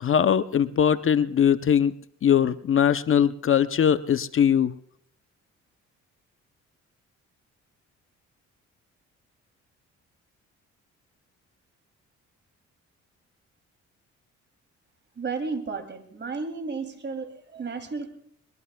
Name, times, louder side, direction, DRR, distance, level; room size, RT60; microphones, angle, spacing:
voice 1, 0.0-1.9 2.2-4.7, left 8 dB, 45° left, 13 dB, 0.7 m, -21 dB
voice 2, 15.1-18.1, right 4 dB, 35° right, 6 dB, 2.8 m, -33 dB
22.5 x 22.0 x 2.3 m, 0.66 s
cardioid pair, 90°, 30 cm